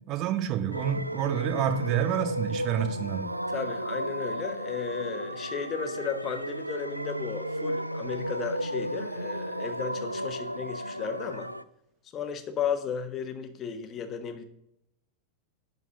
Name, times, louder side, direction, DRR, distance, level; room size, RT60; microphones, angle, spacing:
voice 1, 0.1-3.3, right 9 dB, 40° right, 8 dB, 1.1 m, -28 dB
sound 1, 0.7-11.6, equal, 85° right, 0.4 m, -34 dB
voice 2, 3.5-11.5 12.1-14.4, left 7 dB, 30° left, 7 dB, 1.2 m, -34 dB
11.0 x 4.0 x 6.8 m, 0.81 s
figure-of-eight pair, 90°, 0 cm